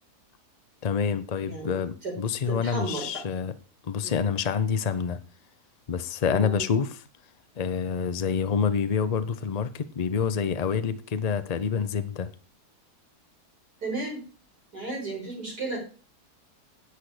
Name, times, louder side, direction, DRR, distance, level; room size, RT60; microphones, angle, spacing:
voice 1, 0.8-3.5 3.8-5.2 5.9-7.0 7.6-12.3, left 6 dB, 65° left, 0.3 m, -27 dB
voice 2, 1.4-1.8 2.0-2.1 2.5-3.2 4.0-4.2 6.2-6.7 13.8-14.2 14.7-15.8, right 3 dB, 90° right, 6.4 m, -34 dB
10.0 x 8.4 x 4.9 m
omnidirectional pair, 1.7 m